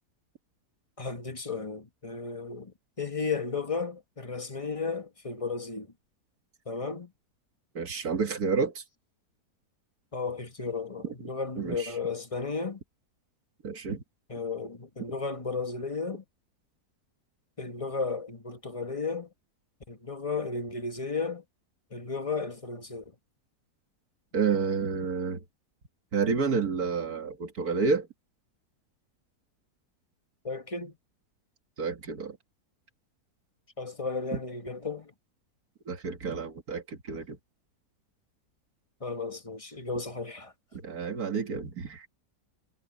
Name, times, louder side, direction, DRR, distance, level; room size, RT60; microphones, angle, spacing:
voice 1, 1.0-5.9 6.7-7.1 10.1-12.8 14.3-16.2 17.6-19.3 19.9-21.4 21.9-23.0 30.4-30.9 33.8-35.1 39.0-40.5, left 4 dB, 20° left, 1.4 m, -34 dB
voice 2, 7.7-8.8 11.6-11.9 13.6-14.0 24.3-25.4 26.1-28.1 31.8-32.4 34.3-34.4 35.9-37.4 40.7-42.1, right 5 dB, 65° right, 2.3 m, -30 dB
omnidirectional pair, 1.7 m